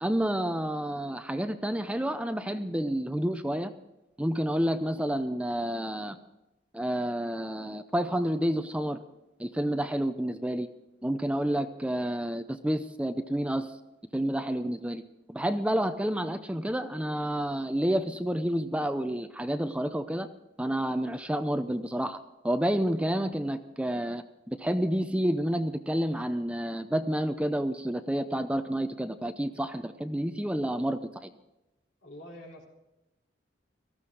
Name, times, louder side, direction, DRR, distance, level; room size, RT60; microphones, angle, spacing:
voice 1, 0.0-3.7 4.2-6.2 6.7-9.0 9.4-10.7 11.0-13.7 14.1-15.0 15.3-20.3 20.6-22.2 22.4-31.3, right 1 dB, 5° right, 9 dB, 0.5 m, -29 dB
voice 2, 32.0-32.7, left 1 dB, 70° left, -1 dB, 3.8 m, -46 dB
18.5 x 14.5 x 3.8 m, 0.95 s
head